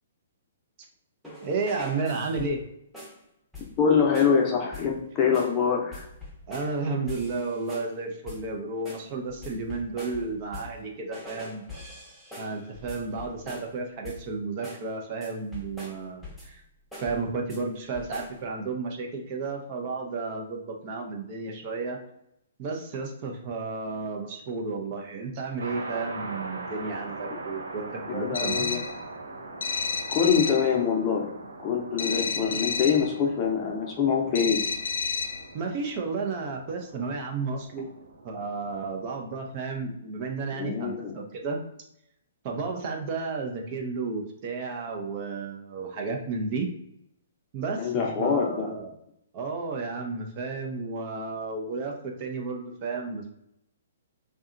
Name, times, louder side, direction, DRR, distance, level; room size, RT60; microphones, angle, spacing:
sound 1, 1.2-2.7 2.9-3.2 3.5-3.9 4.1-4.4 4.7-5.0 5.3-5.6 5.9-6.8 7.1-8.0 8.3-8.5 8.9-10.8 11.1-13.8 14.0-14.3 14.6-14.9 15.2-16.6 16.9-17.6 17.9-18.4, left 2 dB, ahead, 0.8 m, -43 dB
voice 1, 1.4-2.6 6.5-11.6 12.4-16.6 17.0-22.0 22.6-28.7 35.5-37.9 38.2-41.6 42.4-46.7 47.5-48.9 49.3-53.3, right 4 dB, 40° right, 1 dB, 0.6 m, -32 dB
voice 2, 3.8-6.1 28.1-28.8 30.1-31.3 31.6-34.6 40.6-41.2 47.8-48.7, left 6 dB, 30° left, 1 dB, 0.7 m, -24 dB
sound 2, 25.6-39.5, right 3 dB, 80° right, 0.6 m, -41 dB
sound 3, 28.3-29.0 29.6-30.7 32.0-33.1 34.3-35.5, left 5 dB, 75° left, 0.4 m, -30 dB
2.7 x 2.3 x 2.5 m, 0.77 s
hypercardioid pair, 135°, 0 cm